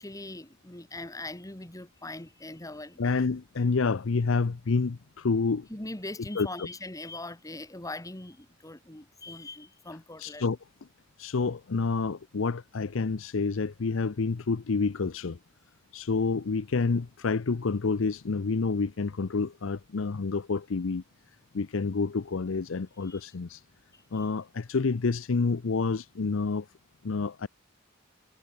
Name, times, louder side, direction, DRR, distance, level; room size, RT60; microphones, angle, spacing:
voice 1, 0.0-3.1 5.7-10.4 23.1-23.2 23.9-24.2, left 2 dB, 15° left, 1.7 m, -41 dB
voice 2, 3.0-5.7 6.4-6.5 10.2-10.6 11.2-15.4 15.9-21.0 21.5-23.6 24.1-26.7 27.0-27.5, left 4 dB, 80° left, 0.6 m, -28 dB
head